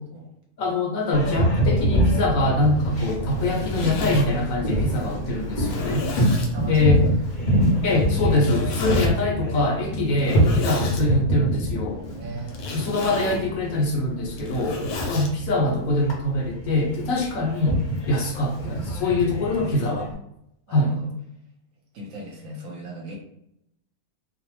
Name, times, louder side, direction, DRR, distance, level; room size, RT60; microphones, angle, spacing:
voice 1, 0.6-6.1 6.7-7.0 7.8-12.0 12.7-17.8 18.1-20.1 20.7-21.0, left 2 dB, 70° left, 0 dB, 0.9 m, -24 dB
Boat Water vehicle, 1.1-20.1, equal, 45° left, 0.6 m, -26 dB
Zipper (clothing), 3.3-4.3 5.0-5.1 5.7-6.5 8.4-9.1 10.1-11.0 12.5-13.4 14.2-15.3, left 3 dB, 90° left, 1.1 m, -32 dB
voice 2, 6.5-7.3 12.1-12.6 20.7-21.1 21.9-23.1, equal, 65° right, -1 dB, 1.0 m, -36 dB
2.7 x 2.0 x 3.0 m, 0.79 s
omnidirectional pair, 1.6 m